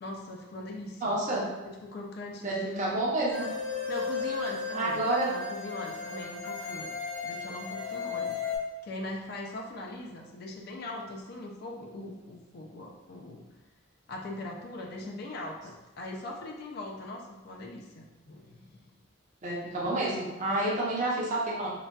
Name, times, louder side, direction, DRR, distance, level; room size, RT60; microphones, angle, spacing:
voice 1, 0.0-1.2 1.6-3.0 3.9-6.9 7.2-8.4 8.8-13.5 14.1-18.8, left 2 dB, 50° left, 1 dB, 0.3 m, -41 dB
voice 2, 1.0-1.4 2.4-3.5 4.7-5.3 15.0-15.1 19.4-21.7, right 2 dB, 35° right, -4 dB, 0.6 m, -29 dB
sound 1, 3.3-8.6, left 5 dB, 10° left, 0.7 m, -35 dB
3.8 x 2.2 x 2.2 m, 1.1 s
head